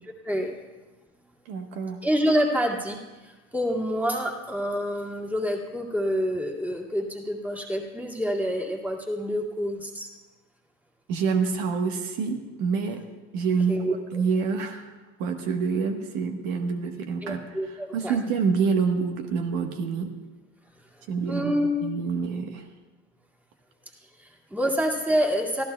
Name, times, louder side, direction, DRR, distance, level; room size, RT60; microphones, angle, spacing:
voice 1, 0.2-0.5 2.0-10.1 13.7-14.2 17.2-18.2 21.2-21.9 24.2-25.6, equal, 5° right, -1 dB, 2.1 m, -27 dB
voice 2, 1.5-2.0 11.1-13.0 13.3-14.9 15.2-17.4 17.9-20.1 21.1-22.6, right 5 dB, 65° right, 4 dB, 1.3 m, -27 dB
24.5 x 14.5 x 2.3 m, 1.2 s
hypercardioid pair, 95°, 36 cm